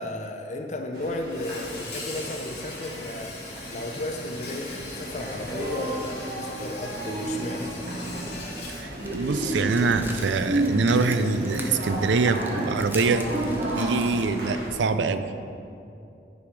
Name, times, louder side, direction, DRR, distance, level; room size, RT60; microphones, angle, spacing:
voice 1, 0.0-3.4 3.7-7.7, left 1 dB, 40° left, 5 dB, 0.6 m, -34 dB
sound 1, 0.9-14.7, right 1 dB, 60° right, 2.0 m, -32 dB
Insect, 1.3-12.7, left 3 dB, 65° left, 2.2 m, -42 dB
voice 2, 8.7-15.3, right 4 dB, 90° right, 10 dB, 0.5 m, -24 dB
sound 2, 8.9-14.3, right 2 dB, 10° right, 0.6 m, -42 dB
10.0 x 4.9 x 5.2 m, 2.6 s
head